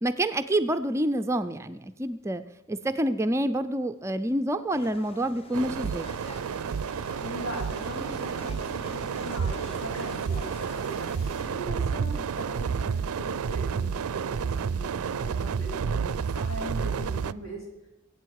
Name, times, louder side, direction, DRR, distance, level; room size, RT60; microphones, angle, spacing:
voice 1, 0.0-2.4 2.7-6.1, right 1 dB, 15° right, 9 dB, 0.4 m, -27 dB
sound 1, 4.7-10.7, left 1 dB, 25° left, 0.7 m, -45 dB
sound 2, 5.0-11.8, left 1 dB, 45° left, 6.0 m, -52 dB
sound 3, 5.5-17.3, right 6 dB, 85° right, 0.4 m, -30 dB
voice 2, 7.2-17.6, equal, 70° left, -2 dB, 4.9 m, -40 dB
23.5 x 8.5 x 4.7 m, 0.91 s
head